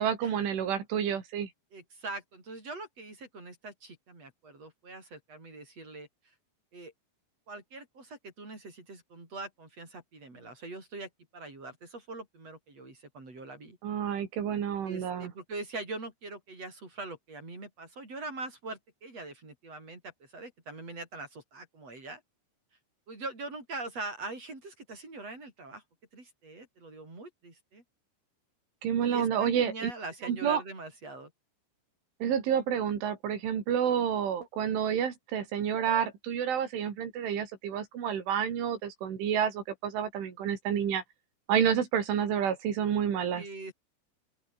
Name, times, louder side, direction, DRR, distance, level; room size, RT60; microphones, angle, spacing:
voice 1, 0.0-1.5 13.8-15.3 28.8-29.9 30.2-30.6 32.2-41.0 41.5-43.4, right 8 dB, 75° right, 6.0 m, -29 dB
voice 2, 1.7-6.3 6.7-6.9 7.5-13.8 14.8-22.2 23.1-25.8 26.1-27.8 29.0-31.3 43.3-43.7, right 2 dB, 30° right, 8.9 m, -42 dB
open air
omnidirectional pair, 5.6 m